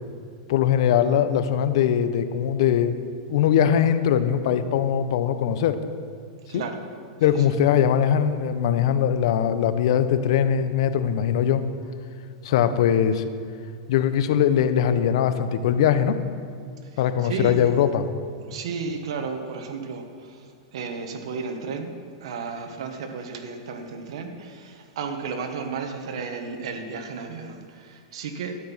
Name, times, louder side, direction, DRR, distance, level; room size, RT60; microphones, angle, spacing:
voice 1, 0.5-3.0 3.3-5.8 6.5-6.6 7.2-11.6 12.4-13.2 13.9-16.2 17.0-18.1, left 9 dB, 65° left, 11 dB, 0.8 m, -21 dB
voice 2, 16.8-17.7 18.4-28.6, right 4 dB, 75° right, 5 dB, 1.5 m, -33 dB
12.5 x 9.2 x 5.8 m, 2.2 s
supercardioid pair, 145°, 3 cm